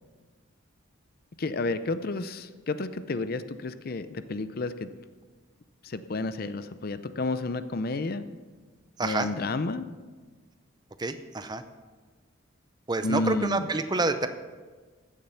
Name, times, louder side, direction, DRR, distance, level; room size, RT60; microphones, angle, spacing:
voice 1, 1.4-4.9 5.8-8.2 9.0-9.8 13.0-13.7, left 3 dB, 45° left, 12 dB, 0.5 m, -31 dB
voice 2, 9.0-9.3 11.0-11.6 12.9-14.3, right 3 dB, 20° right, 9 dB, 0.6 m, -28 dB
15.5 x 7.4 x 5.7 m, 1.4 s
head